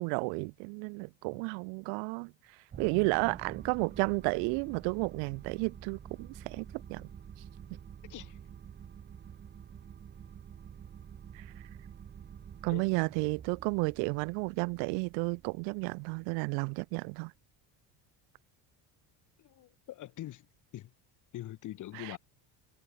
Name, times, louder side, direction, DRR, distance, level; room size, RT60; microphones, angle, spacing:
voice 1, 0.0-2.3 2.8-7.1 11.3-11.4 12.6-17.3 22.0-22.1, right 38 dB, 90° right, 0.9 m, -32 dB
sound 1, 2.7-17.2, right 8 dB, 25° right, 1.7 m, -49 dB
voice 2, 8.1-8.4 12.7-12.9 19.4-20.5 20.7-20.9 21.3-22.2, left 14 dB, 45° left, 3.7 m, -44 dB
cardioid pair, 160°, 42 cm